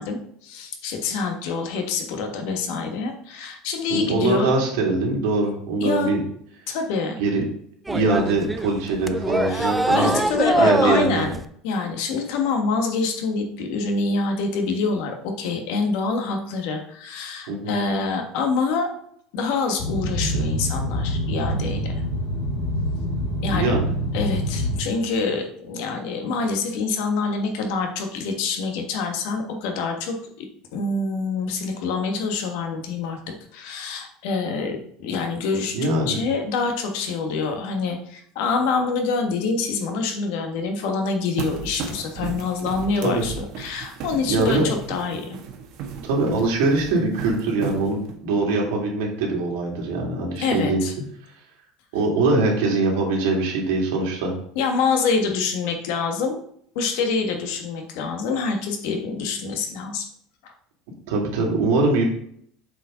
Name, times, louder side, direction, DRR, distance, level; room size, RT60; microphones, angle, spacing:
voice 1, 0.0-4.6 5.8-6.1 6.7-7.2 9.5-11.4 11.6-18.9 19.3-22.0 23.4-23.7 24.1-30.5 30.7-33.2 33.5-45.4 50.4-50.9 54.5-56.4 56.7-60.1, left 4 dB, 65° left, 4 dB, 1.4 m, -26 dB
voice 2, 3.9-6.2 7.2-7.4 7.9-10.1 10.5-11.2 17.5-17.7 23.5-23.8 35.7-36.2 43.0-43.2 44.3-44.7 46.0-50.8 51.9-54.3 61.1-62.0, right 3 dB, 85° right, -1 dB, 2.6 m, -22 dB
sound 1, 7.9-11.4, right 2 dB, 5° right, 0.3 m, -23 dB
Boat Water vehicle, 19.8-24.8, equal, 80° left, 2.9 m, -26 dB
sound 2, 41.4-48.1, right 6 dB, 50° right, 1.2 m, -35 dB
7.7 x 4.9 x 3.8 m, 0.65 s
cardioid pair, 175°, 0 cm